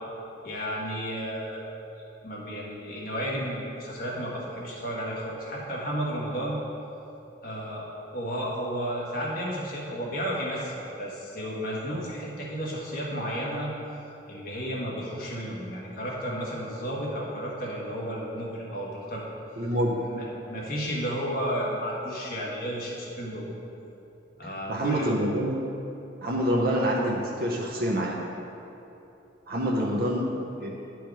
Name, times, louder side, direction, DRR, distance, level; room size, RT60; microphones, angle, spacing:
voice 1, 0.4-1.6 2.2-6.6 7.4-7.8 8.1-13.7 14.3-19.3 19.9-23.5 24.4-25.1 26.4-26.5, equal, 50° left, -4 dB, 1.5 m, -32 dB
voice 2, 19.6-20.1 24.7-25.6 26.2-28.2 29.5-30.9, equal, 50° right, -2 dB, 0.7 m, -27 dB
10.5 x 4.7 x 4.7 m, 2.9 s
head